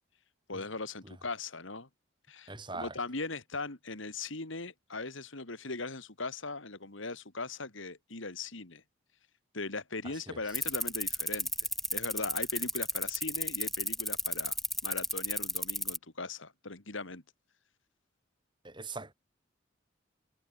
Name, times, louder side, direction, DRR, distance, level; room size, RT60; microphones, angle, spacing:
voice 1, 0.5-1.9 2.3-8.8 9.5-14.6 14.8-17.2, left 3 dB, 70° left, 2.7 m, -39 dB
voice 2, 2.5-2.9 10.3-10.4 18.6-19.1, right 3 dB, 25° right, 4.6 m, -41 dB
sound 1, 10.5-16.0, left 1 dB, ahead, 0.8 m, -32 dB
head